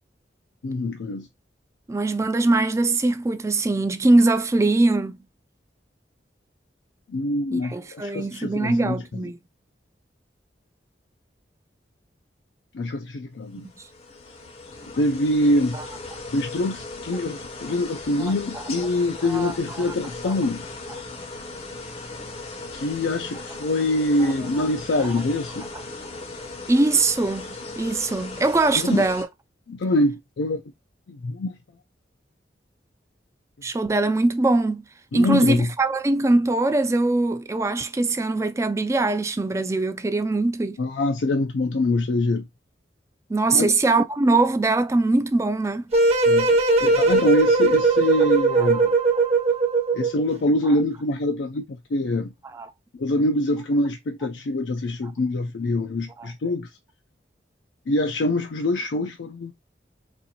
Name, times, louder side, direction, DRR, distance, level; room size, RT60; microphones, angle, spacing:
voice 1, 0.6-1.3 7.1-9.3 12.7-13.7 15.0-15.8 16.3-20.6 22.7-25.7 28.8-29.1 29.7-30.6 31.1-31.6 35.1-35.7 40.8-42.4 43.5-43.7 46.3-48.9 49.9-52.3 53.0-56.7 57.9-59.5, left 2 dB, 80° left, 0.4 m, -24 dB
voice 2, 1.9-5.2 7.5-9.4 18.2-18.3 19.3-19.5 20.2-20.3 26.7-29.3 33.6-34.8 35.1-40.8 43.3-45.8 48.6-48.7 52.5-52.7 56.2-56.3, right 2 dB, 15° right, 0.3 m, -22 dB
sound 1, 13.5-29.2, left 3 dB, 35° left, 0.6 m, -38 dB
sound 2, 45.9-50.2, right 3 dB, 35° right, 0.8 m, -19 dB
4.2 x 2.5 x 2.7 m
head